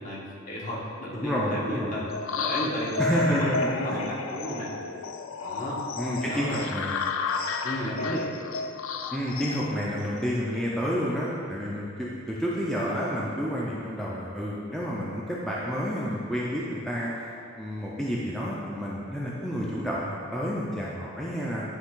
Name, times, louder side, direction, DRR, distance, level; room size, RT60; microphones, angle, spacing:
voice 1, 0.0-2.1 2.4-4.7 5.4-5.8 6.2-6.7 7.6-8.3, equal, 40° left, -5 dB, 1.3 m, -33 dB
voice 2, 1.2-2.0 3.0-4.0 6.0-7.0 9.1-17.1 17.6-21.6, equal, ahead, -6 dB, 0.5 m, -30 dB
sound 1, 2.1-10.5, left 4 dB, 70° left, 0.4 m, -32 dB
9.7 x 3.4 x 3.8 m, 2.4 s
head